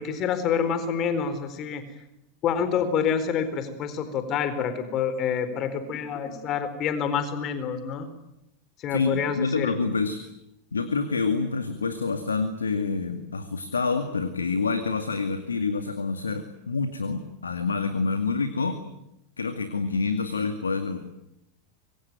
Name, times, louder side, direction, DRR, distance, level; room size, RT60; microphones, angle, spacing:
voice 1, 0.0-1.8 2.4-8.1 8.8-9.8, left 7 dB, 40° left, 11 dB, 4.3 m, -27 dB
voice 2, 8.9-10.2 10.7-18.8 19.4-21.0, left 4 dB, 85° left, 8 dB, 2.2 m, -27 dB
25.5 x 24.5 x 9.2 m, 0.85 s
figure-of-eight pair, 90°, 0 cm